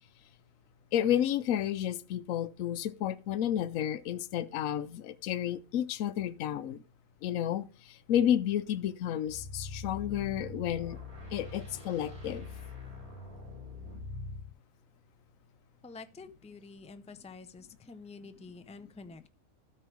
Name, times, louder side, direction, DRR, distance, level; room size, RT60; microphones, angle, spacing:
voice 1, 0.9-6.8 7.2-11.0 11.3-12.5, left 10 dB, 75° left, 1.0 m, -31 dB
sound 1, 9.3-14.5, left 3 dB, 50° right, 4.5 m, -43 dB
voice 2, 15.8-19.3, left 4 dB, 10° left, 0.3 m, -48 dB
12.5 x 4.7 x 6.2 m
omnidirectional pair, 1.4 m